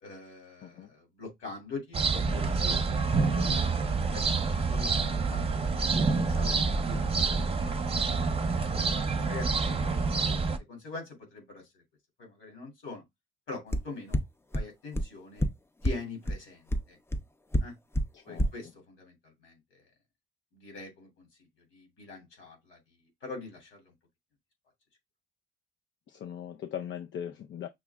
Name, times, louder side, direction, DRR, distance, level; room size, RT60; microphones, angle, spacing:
voice 1, 0.0-4.2 4.5-4.9 5.3-11.8 12.2-13.0 13.5-14.2 14.5-15.5 15.8-17.0 17.6-17.7 18.2-19.9 20.5-21.3 21.7-22.8 23.2-23.9, left 3 dB, 85° left, 2.9 m, -44 dB
sound 1, 1.9-10.6, right 4 dB, 30° right, 0.7 m, -27 dB
sound 2, 13.7-13.8 14.1-14.2 14.5-14.6 14.9-15.0 15.4-15.5 15.8-15.9 16.3-16.4 16.7-16.8 17.1-17.2 17.5-17.6 17.9-18.0 18.4-18.5, equal, 10° left, 0.5 m, -25 dB
voice 2, 26.1-27.7, left 9 dB, 65° left, 0.5 m, -39 dB
6.0 x 2.0 x 3.5 m
cardioid pair, 90°, 20 cm